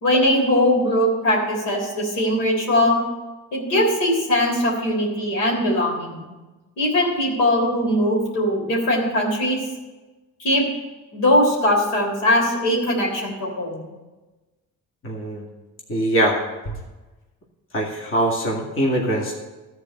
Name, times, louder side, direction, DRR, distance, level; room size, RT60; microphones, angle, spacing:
voice 1, 0.0-3.0 3.5-6.2 6.8-9.6 10.4-10.6 11.1-13.9, left 1 dB, 90° left, -2 dB, 3.5 m, -20 dB
voice 2, 15.0-15.4 15.9-16.4 16.7-16.8 17.7-19.3, right 1 dB, 45° left, -2 dB, 2.3 m, -22 dB
13.5 x 4.7 x 8.5 m, 1.2 s
cardioid pair, 90°, 30 cm